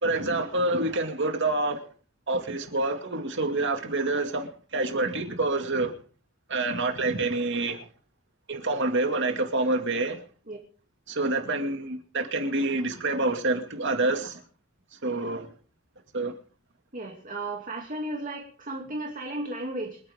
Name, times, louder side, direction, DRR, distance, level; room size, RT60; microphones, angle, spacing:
voice 1, 0.0-1.8 2.3-4.5 4.7-5.9 6.5-7.8 8.5-10.2 11.1-14.4 15.0-15.5 16.1-16.3, right 2 dB, 60° right, 2.3 m, -27 dB
voice 2, 16.9-20.0, right 2 dB, 40° right, 2.6 m, -34 dB
28.0 x 9.8 x 3.7 m
head